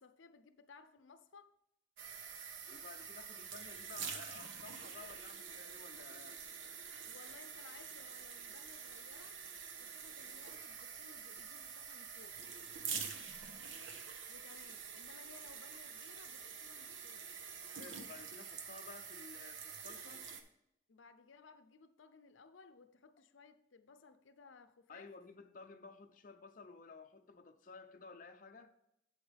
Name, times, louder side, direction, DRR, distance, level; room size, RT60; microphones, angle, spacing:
voice 1, 0.0-1.5 7.0-9.4 9.8-12.4 14.3-17.3 20.9-25.1, left 4 dB, 85° left, 0.6 m, -60 dB
sound 1, 2.0-20.4, right 6 dB, 85° right, 1.0 m, -47 dB
voice 2, 2.7-6.4 12.8-13.4 17.7-20.3 24.9-28.7, left 4 dB, 45° left, 0.6 m, -54 dB
8.0 x 7.9 x 3.4 m
head